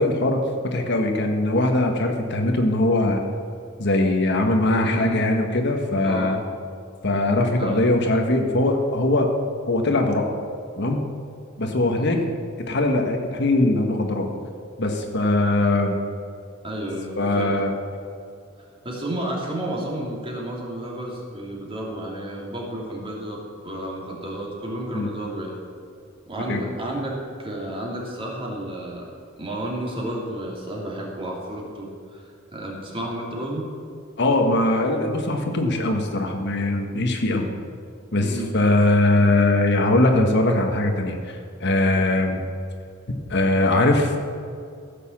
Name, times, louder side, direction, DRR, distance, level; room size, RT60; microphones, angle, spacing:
voice 1, 0.0-3.2 3.8-6.4 7.0-9.3 9.7-10.3 10.8-11.0 11.6-12.2 12.7-14.3 14.8-16.0 17.2-17.7 24.9-25.1 26.5-26.6 34.2-37.5 38.1-42.4 43.3-44.2, left 2 dB, 60° left, 3 dB, 1.4 m, -21 dB
voice 2, 4.8-5.2 6.0-6.4 7.6-7.8 11.8-12.2 16.6-17.6 18.8-25.6 26.3-29.1 29.4-32.2 32.5-33.7 38.2-38.5, right 1 dB, 25° right, -3 dB, 2.9 m, -31 dB
15.5 x 6.8 x 7.2 m, 2.4 s
head